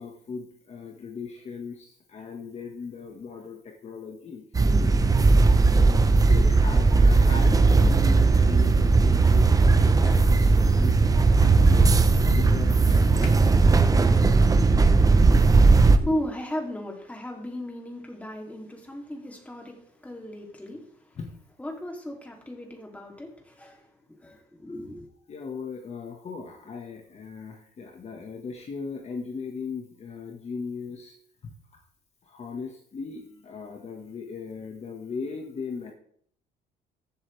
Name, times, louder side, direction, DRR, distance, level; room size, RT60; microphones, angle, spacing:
voice 1, 0.0-4.4 6.1-11.8 12.3-13.3 21.1-21.3 25.3-31.1 31.4-31.5 32.2-35.9, left 5 dB, 40° left, 1.6 m, -38 dB
sound 1, 4.6-16.0, right 3 dB, 20° right, 0.8 m, -18 dB
sound 2, 7.5-13.4, left 3 dB, 60° left, 2.2 m, -36 dB
voice 2, 15.2-19.8 20.0-20.8 21.6-23.9 24.2-25.1, left 1 dB, 10° left, 2.9 m, -36 dB
14.0 x 8.0 x 3.4 m
cardioid pair, 110°, 17 cm